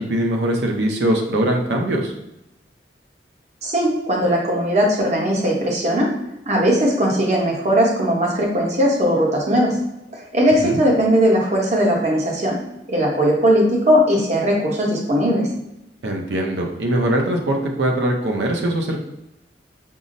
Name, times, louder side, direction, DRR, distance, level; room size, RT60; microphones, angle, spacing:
voice 1, 0.0-2.1 10.6-10.8 16.0-19.0, right 1 dB, 70° right, 1 dB, 0.6 m, -21 dB
voice 2, 3.6-6.1 6.4-9.8 10.1-12.6 12.9-15.5, equal, 40° right, -2 dB, 0.9 m, -18 dB
5.5 x 2.0 x 2.5 m, 0.87 s
head